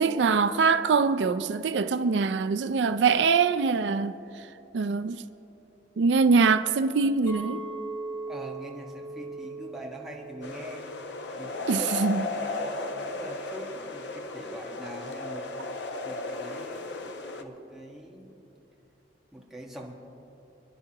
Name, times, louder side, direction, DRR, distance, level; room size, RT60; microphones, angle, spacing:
voice 1, 0.0-4.1 4.7-5.2 6.0-7.6 11.7-12.2, right 5 dB, 85° right, 0.4 m, -23 dB
Chink clink, 7.3-11.6 11.9-12.4, right 3 dB, 35° left, 2.3 m, -40 dB
voice 2, 8.3-15.8 16.0-18.4 19.3-19.9, right 1 dB, ahead, 1.4 m, -43 dB
sound 1, 10.4-17.4, left 3 dB, 90° left, 0.8 m, -35 dB
26.0 x 10.5 x 2.9 m
head